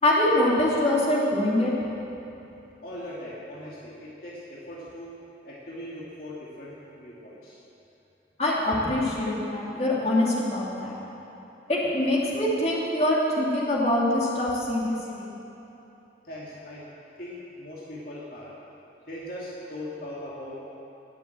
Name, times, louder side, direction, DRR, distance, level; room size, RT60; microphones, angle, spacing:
voice 1, 0.0-1.7 8.4-11.0 11.7-15.3, left 1 dB, 35° left, -5 dB, 2.6 m, -24 dB
voice 2, 2.8-5.1 5.4-7.6 16.2-16.9 17.2-18.6 19.1-20.6, left 1 dB, 50° left, -6 dB, 2.2 m, -40 dB
19.5 x 7.6 x 7.8 m, 3.0 s
head